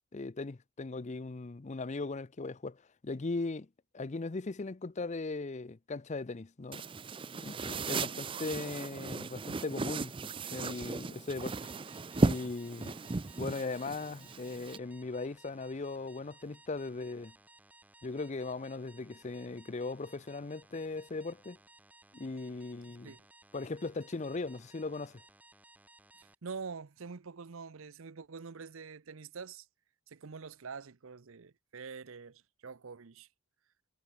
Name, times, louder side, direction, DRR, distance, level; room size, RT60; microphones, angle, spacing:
voice 1, 0.1-2.8 3.0-3.7 3.9-6.8 7.4-10.1 10.5-11.6 12.2-13.0 13.4-17.3 18.0-21.6 22.1-23.1 23.5-25.2, left 3 dB, 30° left, 0.5 m, -38 dB
sound 1, 6.7-14.8, right 3 dB, 25° right, 0.5 m, -35 dB
sound 2, 11.4-26.3, right 2 dB, 5° right, 1.0 m, -60 dB
voice 2, 26.2-29.7 30.1-33.3, right 5 dB, 65° right, 0.7 m, -45 dB
head